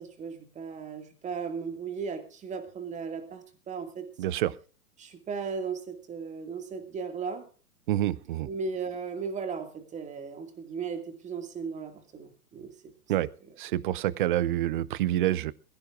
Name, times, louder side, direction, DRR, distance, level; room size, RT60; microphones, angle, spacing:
voice 1, 0.0-4.1 5.0-7.5 8.5-12.9 13.2-13.3, right 5 dB, 15° right, 7 dB, 2.3 m, -36 dB
voice 2, 4.2-4.5 7.9-8.5 13.1-13.3 13.6-15.5, right 14 dB, 35° right, 21 dB, 0.6 m, -27 dB
21.5 x 16.0 x 2.6 m, 0.37 s
hypercardioid pair, 125°, 46 cm